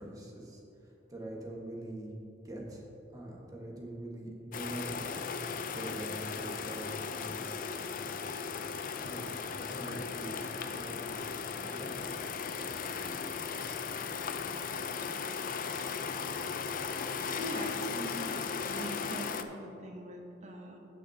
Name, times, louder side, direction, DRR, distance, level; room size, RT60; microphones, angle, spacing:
voice 1, 0.0-2.1 2.4-2.9 3.1-7.6 9.0-11.1 11.7-12.0, right 1 dB, 20° right, -3 dB, 1.4 m, -44 dB
sound 1, 4.5-19.4, left 5 dB, 50° left, 0.4 m, -37 dB
voice 2, 17.4-20.8, equal, 40° right, 1 dB, 1.1 m, -41 dB
16.0 x 6.4 x 2.8 m, 2.8 s
head